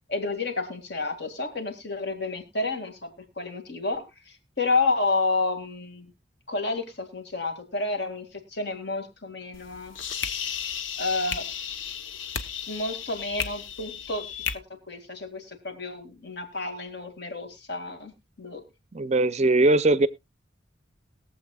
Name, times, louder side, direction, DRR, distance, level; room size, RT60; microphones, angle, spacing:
voice 1, 0.1-3.1 3.4-6.1 6.5-10.0 11.0-11.5 12.7-14.3 14.9-18.1 18.4-18.7, left 3 dB, 60° left, 6 dB, 2.0 m, -30 dB
sound 1, 9.5-14.5, left 7 dB, 80° left, 0.9 m, -34 dB
voice 2, 18.9-20.1, right 2 dB, 35° right, 17 dB, 0.5 m, -20 dB
21.5 x 7.4 x 2.3 m, 0.22 s
head